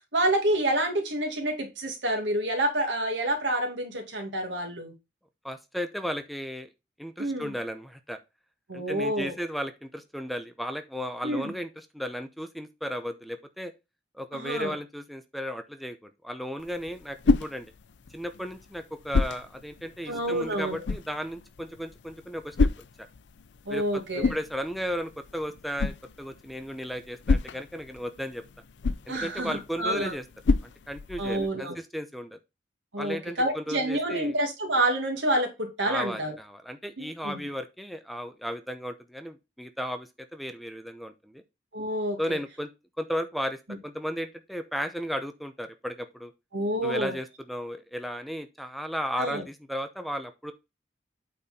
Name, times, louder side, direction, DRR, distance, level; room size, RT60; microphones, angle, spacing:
voice 1, 0.1-4.9 7.2-7.5 8.7-9.3 11.2-11.5 14.3-14.7 20.1-20.8 23.7-24.3 29.1-30.1 31.2-31.8 32.9-36.4 37.0-37.4 41.7-42.4 43.7-43.8 46.5-47.2 49.2-49.4, right 1 dB, 90° right, 2.3 m, -28 dB
voice 2, 5.4-6.7 7.0-8.2 8.7-13.7 14.1-17.7 18.1-22.7 23.7-25.9 26.2-28.4 29.1-30.2 30.6-32.4 33.0-34.4 35.8-41.4 42.2-42.7 43.0-46.3 46.8-50.5, equal, ahead, 0.7 m, -35 dB
sound 1, 16.6-31.5, left 3 dB, 70° left, 0.5 m, -31 dB
8.6 x 4.3 x 4.2 m
head